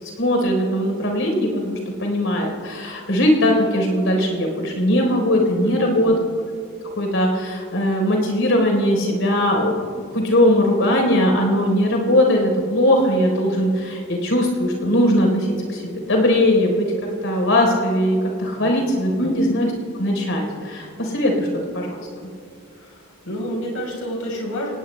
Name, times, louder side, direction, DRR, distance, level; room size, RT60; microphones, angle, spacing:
voice 1, 0.0-6.1 7.0-16.9 17.2-19.7 20.0-21.5 21.7-22.3, left 1 dB, 70° left, 1 dB, 3.9 m, -20 dB
voice 2, 5.6-6.2 18.6-18.7 19.2-19.3 22.7-24.7, equal, 85° left, -1 dB, 3.8 m, -30 dB
29.0 x 18.5 x 2.2 m, 2.3 s
head